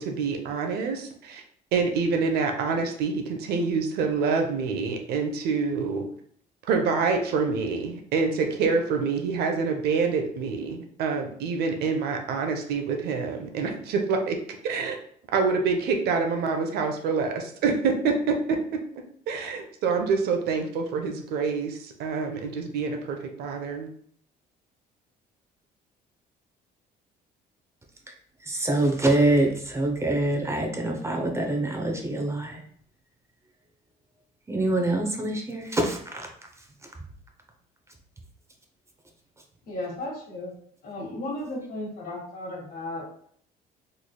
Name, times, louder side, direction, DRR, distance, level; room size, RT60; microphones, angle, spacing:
voice 1, 0.0-1.4 1.7-6.0 6.6-14.4 14.6-15.0 15.3-18.6 19.3-23.9, right 4 dB, 70° right, 4 dB, 0.6 m, -26 dB
voice 2, 28.4-32.6 34.5-36.3, right 2 dB, 15° right, 1 dB, 0.6 m, -25 dB
voice 3, 39.7-40.5 40.8-43.0, left 1 dB, 60° left, 0 dB, 1.3 m, -34 dB
3.8 x 3.1 x 2.2 m, 0.62 s
cardioid pair, 110°, 17 cm